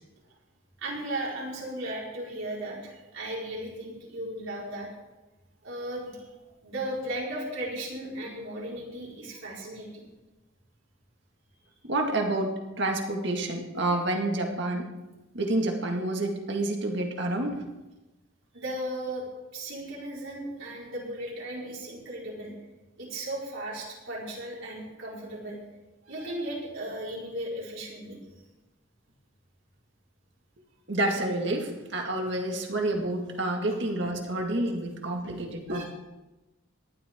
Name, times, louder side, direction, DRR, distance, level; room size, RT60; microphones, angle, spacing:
voice 1, 0.8-4.9 5.6-6.2 6.6-10.0 18.5-19.3 19.5-22.5 23.0-25.6 26.0-28.2 35.7-35.8, right 1 dB, 75° right, -5 dB, 4.8 m, -36 dB
voice 2, 11.8-14.9 15.3-17.6 30.9-35.8, right 1 dB, 55° right, 2 dB, 1.9 m, -29 dB
18.5 x 12.5 x 3.7 m, 1.1 s
head